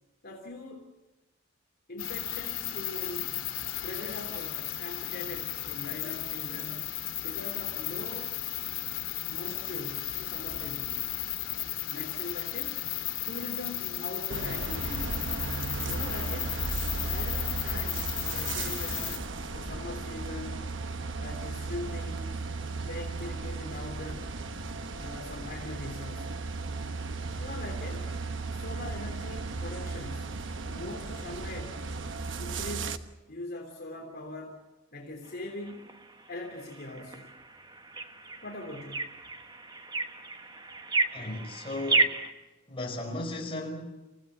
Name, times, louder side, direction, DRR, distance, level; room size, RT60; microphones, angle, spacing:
voice 1, 0.2-0.9 1.9-3.3 3.8-6.9 7.2-8.3 9.3-11.0 11.9-12.8 13.3-15.2 15.8-16.6 16.9-19.2 19.5-20.6 21.2-22.3 22.8-24.3 25.0-26.4 27.4-28.0 28.5-30.3 30.6-31.8 32.4-33.0 33.3-34.6 34.9-35.9 36.3-37.3 38.4-39.1, left 2 dB, 45° left, 3.3 m, -41 dB
sound 1, 2.0-19.2, left 13 dB, 65° left, 2.7 m, -35 dB
sound 2, 14.3-33.0, right 3 dB, 60° right, 1.1 m, -35 dB
sound 3, 35.2-42.3, right 3 dB, 20° right, 1.3 m, -33 dB
voice 2, 41.1-42.1 42.7-43.8, left 2 dB, 25° left, 4.7 m, -35 dB
28.5 x 16.0 x 7.5 m
head